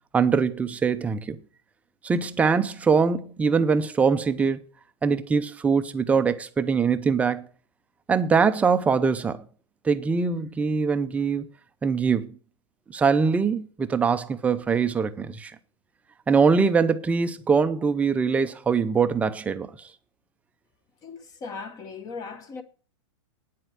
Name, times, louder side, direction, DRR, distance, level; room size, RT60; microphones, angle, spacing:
voice 1, 0.1-1.4 2.0-4.6 5.0-7.5 8.1-9.4 9.8-11.5 11.8-12.3 12.9-15.5 16.3-19.9, right 5 dB, 10° right, 0.6 m, -23 dB
voice 2, 21.0-22.6, left 4 dB, 20° left, 1.1 m, -38 dB
9.4 x 7.9 x 9.2 m
supercardioid pair, 160°, 16 cm